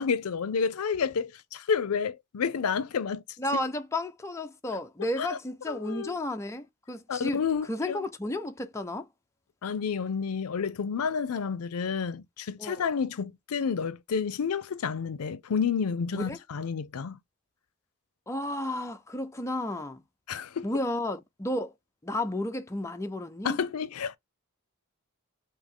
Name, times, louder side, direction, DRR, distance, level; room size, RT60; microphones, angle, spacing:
voice 1, 0.0-3.2 3.5-3.6 5.2-5.3 5.7-6.1 7.1-8.0 9.6-17.2 20.3-20.7 23.4-24.2, left 6 dB, 85° left, 0.5 m, -30 dB
voice 2, 3.4-7.4 7.7-9.1 12.6-12.9 16.1-16.4 18.3-20.0 20.6-21.7 22.0-23.6, left 1 dB, 15° left, 0.4 m, -32 dB
3.5 x 2.8 x 3.6 m
head